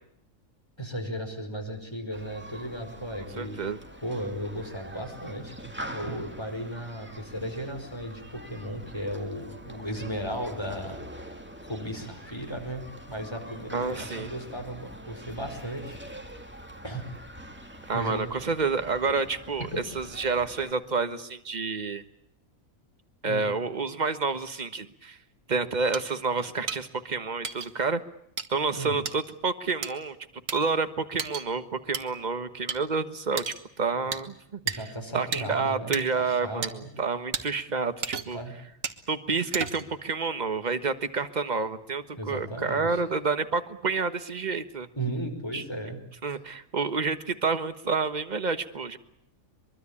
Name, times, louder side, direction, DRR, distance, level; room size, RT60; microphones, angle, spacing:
voice 1, 0.8-3.7 4.0-11.3 11.6-16.0 16.8-17.0 17.9-18.2 23.2-23.5 28.7-28.9 34.0-34.1 34.6-36.9 38.3-38.5 42.1-43.0 45.0-46.0, right 1 dB, 20° left, 5 dB, 5.2 m, -35 dB
Human group actions, 2.1-20.7, right 1 dB, 10° right, 2.1 m, -44 dB
voice 2, 3.4-3.8 6.0-6.1 13.7-14.3 17.9-19.7 19.9-22.0 23.2-25.2 25.5-28.0 28.5-30.2 30.5-34.9 35.1-38.4 39.1-44.9 45.5-45.6 46.2-49.0, right 4 dB, 35° right, 10 dB, 1.4 m, -29 dB
sound 1, 25.9-26.0 26.7-26.8 27.4-27.7 28.4-28.5 29.1-29.2 29.8-29.9 30.5-30.6 31.2-31.5 31.9-32.0 32.7-32.8 33.4-33.6 34.1-34.2 34.7-34.8 35.3-35.4 35.9-36.0 36.6-36.7 37.3-37.4 38.0-38.4 38.8-39.0 39.5-39.9, right 6 dB, 75° right, 1.9 m, -32 dB
23.5 x 23.5 x 8.6 m, 0.71 s
omnidirectional pair, 1.4 m